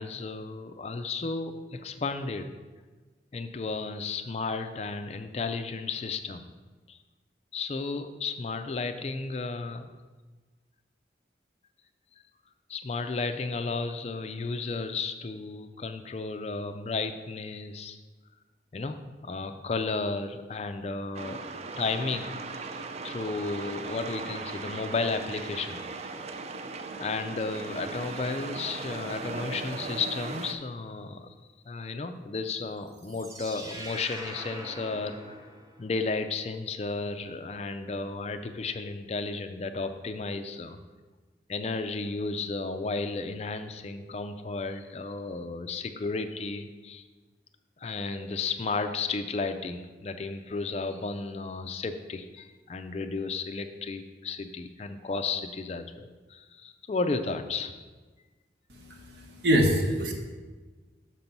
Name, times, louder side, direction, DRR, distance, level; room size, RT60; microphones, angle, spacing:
voice 1, 0.0-2.6 3.3-6.5 6.9-7.0 7.5-9.9 12.7-18.0 18.7-21.5 21.8-26.2 26.5-26.6 27.0-31.3 31.7-35.5 35.8-40.8 41.5-47.0 47.8-57.7, left 3 dB, 35° left, 8 dB, 0.4 m, -33 dB
sound 1, 21.1-30.5, right 3 dB, 35° right, 0.4 m, -38 dB
sound 2, 32.9-36.0, right 1 dB, 20° right, 0.7 m, -43 dB
voice 2, 58.7-60.1, equal, 70° right, 2 dB, 1.1 m, -25 dB
6.0 x 5.8 x 5.3 m, 1.3 s
head